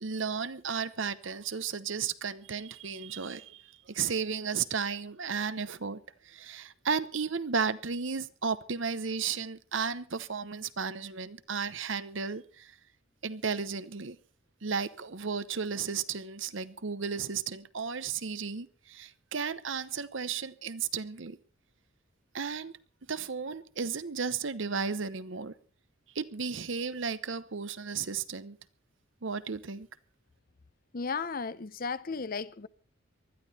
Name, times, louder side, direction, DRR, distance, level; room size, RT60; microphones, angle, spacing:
voice 1, 0.0-12.8 13.2-14.2 14.6-21.4 22.3-22.7 23.1-25.5 26.1-28.6 29.2-29.9, right 6 dB, 65° right, 0.9 m, -34 dB
voice 2, 30.9-32.7, left 5 dB, 45° left, 0.6 m, -34 dB
20.0 x 13.0 x 4.2 m
head